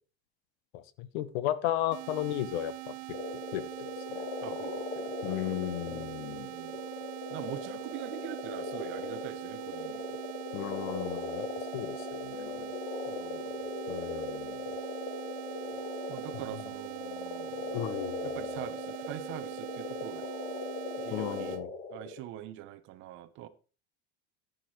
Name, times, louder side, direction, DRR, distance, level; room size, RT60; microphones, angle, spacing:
voice 1, 0.7-2.9 3.5-4.3 5.2-6.5 10.5-11.5 11.7-12.8 13.9-14.6 17.7-18.5 21.1-21.7, left 13 dB, 65° left, 0.9 m, -35 dB
sound 1, 1.9-21.6, right 21 dB, 80° right, 0.7 m, -43 dB
sound 2, 3.1-22.2, left 3 dB, 25° left, 0.9 m, -39 dB
voice 2, 4.4-5.1 5.4-6.8 7.3-10.2 13.1-13.5 16.1-17.9 18.2-20.3 21.0-21.6 21.9-23.5, right 13 dB, 35° right, 0.7 m, -44 dB
10.5 x 10.5 x 3.1 m
cardioid pair, 170°, 33 cm